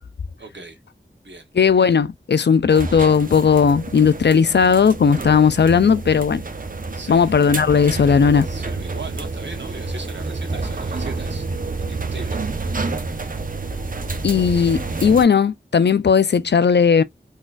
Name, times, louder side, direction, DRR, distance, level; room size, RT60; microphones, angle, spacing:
voice 1, 0.4-0.8 1.2-1.5 6.9-7.3 8.4-11.4 11.9-12.9, right 3 dB, 65° right, 1.1 m, -38 dB
voice 2, 1.6-6.4 7.1-8.5 14.2-17.0, left 6 dB, 65° left, 0.4 m, -16 dB
sound 1, 2.7-15.2, right 3 dB, 45° right, 0.6 m, -29 dB
3.9 x 2.4 x 2.4 m
wide cardioid pair, 45°, 19 cm